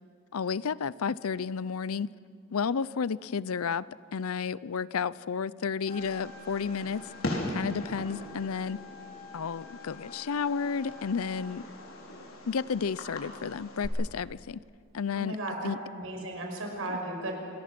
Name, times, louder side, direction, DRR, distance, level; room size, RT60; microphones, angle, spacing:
voice 1, 0.3-2.1 2.5-3.9 4.1-7.0 7.5-8.8 9.3-11.6 12.5-14.6 14.9-15.8, left 6 dB, 90° left, 19 dB, 0.5 m, -32 dB
Trumpet, 5.7-11.5, left 4 dB, 25° left, 6.5 m, -49 dB
Fireworks, 5.9-13.9, left 1 dB, 70° left, 4.6 m, -40 dB
voice 2, 15.1-17.4, right 1 dB, 70° right, 2 dB, 5.5 m, -35 dB
27.5 x 21.5 x 6.0 m, 2.3 s
head